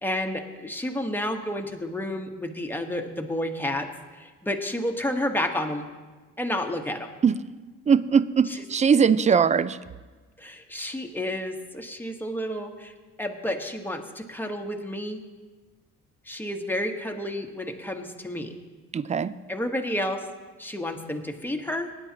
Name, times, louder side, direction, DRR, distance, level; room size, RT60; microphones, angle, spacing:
voice 1, 0.0-3.9 4.1-5.9 6.4-7.1 8.5-8.6 10.4-12.9 13.2-15.2 16.3-18.6 19.5-20.2 20.6-21.9, left 1 dB, 5° left, 4 dB, 1.1 m, -30 dB
voice 2, 7.9-9.8 18.9-19.3, right 6 dB, 25° right, 17 dB, 0.4 m, -20 dB
19.5 x 9.8 x 2.8 m, 1.3 s
cardioid pair, 90°, 30 cm